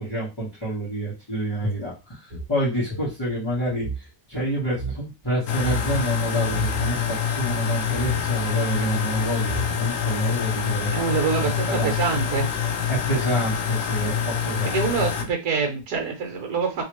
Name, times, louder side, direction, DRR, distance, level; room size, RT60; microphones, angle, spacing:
voice 1, 0.0-10.9 11.7-11.9 12.9-14.8, right 1 dB, 15° left, -10 dB, 1.3 m, -28 dB
sound 1, 1.6-4.1 4.3-4.4 4.7-5.0 5.6-6.0 6.4-6.9 7.9-8.3 9.1-9.2 9.4-10.0, right 1 dB, 20° right, 1.4 m, -32 dB
sound 2, 5.5-15.2, left 8 dB, 65° left, 0.8 m, -26 dB
voice 2, 10.9-12.6 14.6-16.8, right 5 dB, 65° right, 2 dB, 1.4 m, -25 dB
3.2 x 2.9 x 3.0 m, 0.28 s
omnidirectional pair, 1.9 m